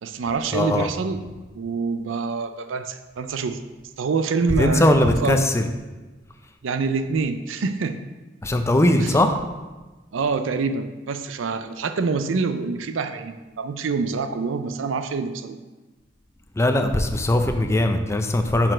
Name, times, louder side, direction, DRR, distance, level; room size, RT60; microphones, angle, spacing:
voice 1, 0.0-1.2 1.5-3.6 4.0-4.9 5.2-5.4 6.6-8.0 9.0-9.2 10.1-15.6, right 4 dB, 90° right, 8 dB, 0.5 m, -26 dB
voice 2, 0.5-0.9 4.6-5.7 8.4-9.4 16.6-18.7, left 1 dB, 15° left, 6 dB, 0.5 m, -20 dB
6.1 x 4.4 x 5.0 m, 1.2 s
head